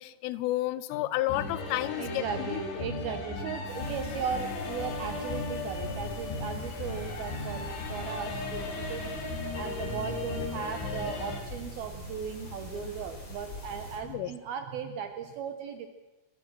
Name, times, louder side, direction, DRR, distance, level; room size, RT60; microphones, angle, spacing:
voice 1, 0.0-2.6 14.0-14.3, left 15 dB, 85° left, 15 dB, 3.4 m, -31 dB
sound 1, 1.3-11.4, left 3 dB, 70° left, 5.1 m, -36 dB
voice 2, 2.0-9.1 9.5-15.9, right 7 dB, 75° right, 7 dB, 2.2 m, -37 dB
sound 2, 3.6-14.0, left 2 dB, 35° left, 4.9 m, -43 dB
29.5 x 15.0 x 6.2 m, 1.1 s
omnidirectional pair, 5.7 m